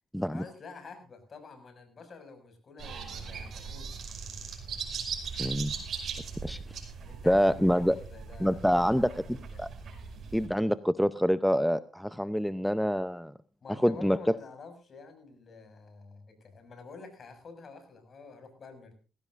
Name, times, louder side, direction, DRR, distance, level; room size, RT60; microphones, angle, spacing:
voice 1, 0.3-3.9 7.0-9.7 13.6-18.9, left 4 dB, 45° left, 7 dB, 6.2 m, -49 dB
sound 1, 2.8-10.5, right 6 dB, 55° right, 5.7 m, -39 dB
voice 2, 5.4-5.7 6.4-6.6 7.3-8.0 8.4-9.1 9.6-9.7 10.3-13.3 13.8-14.2, equal, ahead, 13 dB, 0.6 m, -26 dB
20.5 x 16.0 x 2.5 m, 0.33 s
cardioid pair, 90°, 0 cm